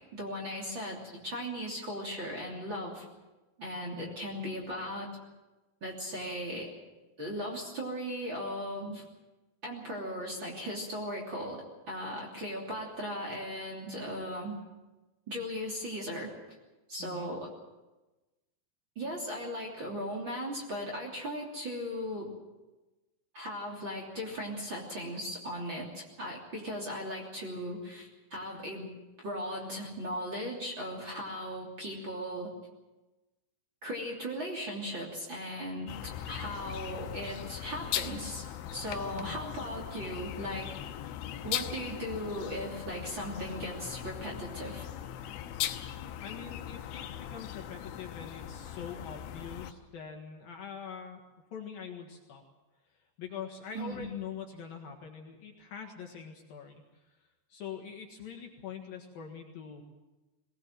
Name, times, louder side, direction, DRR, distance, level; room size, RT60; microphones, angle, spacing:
voice 1, 0.1-3.1 3.6-5.1 5.8-6.7 7.2-9.0 9.6-14.6 15.3-16.3 16.9-17.5 18.9-22.3 23.3-28.9 29.2-32.5 33.8-38.4 38.7-40.7 41.4-44.9 53.7-54.1, equal, 30° right, -1 dB, 3.1 m, -37 dB
sound 1, 35.9-49.7, left 11 dB, 90° left, 3.4 m, -39 dB
voice 2, 46.2-51.2 51.5-52.4 53.2-59.8, left 7 dB, 60° left, 2 dB, 3.0 m, -44 dB
22.0 x 18.5 x 7.6 m, 1.1 s
omnidirectional pair, 5.4 m